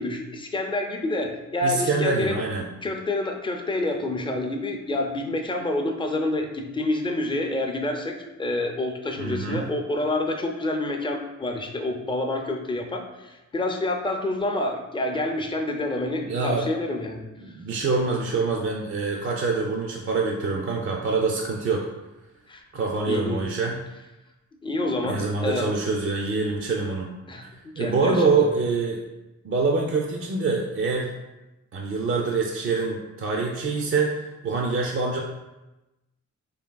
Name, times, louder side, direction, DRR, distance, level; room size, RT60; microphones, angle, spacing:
voice 1, 0.0-2.4 2.8-17.2 22.5-22.6 23.1-23.4 24.6-25.7 27.3-27.5 27.8-28.5, left 2 dB, 15° left, 3 dB, 0.4 m, -28 dB
voice 2, 1.6-2.7 9.2-9.6 16.3-16.7 17.4-21.9 22.7-23.8 25.0-27.1 27.4-29.0 29.4-31.1 31.7-35.2, right 4 dB, 45° right, 0 dB, 0.4 m, -25 dB
3.6 x 3.5 x 2.2 m, 1.0 s
cardioid pair, 80°, 29 cm